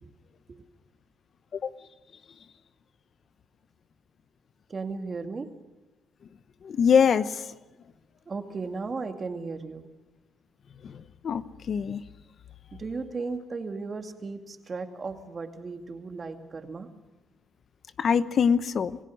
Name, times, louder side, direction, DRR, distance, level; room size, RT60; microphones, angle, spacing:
voice 1, 4.7-5.5 8.3-9.9 12.8-16.9, right 4 dB, 35° right, 6 dB, 2.4 m, -35 dB
voice 2, 6.6-7.4 10.8-10.9 11.2-12.0 18.0-19.0, left 7 dB, 55° left, 13 dB, 0.9 m, -23 dB
28.0 x 16.0 x 6.4 m, 1.1 s
cardioid pair, 90°, 0 cm